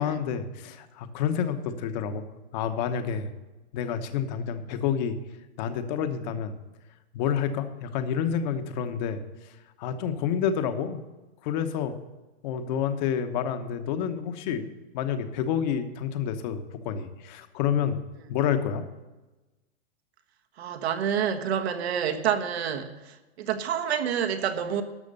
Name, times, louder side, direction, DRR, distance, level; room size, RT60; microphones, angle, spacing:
voice 1, 0.0-2.2 2.5-3.3 3.7-5.2 5.6-6.6 7.1-9.2 9.8-11.0 11.4-12.0 12.4-14.7 14.9-18.0 18.3-18.9, left 8 dB, 45° left, 9 dB, 1.1 m, -28 dB
voice 2, 20.6-24.8, right 8 dB, 85° right, 6 dB, 1.4 m, -28 dB
12.5 x 6.5 x 6.6 m, 1.1 s
supercardioid pair, 160°, 31 cm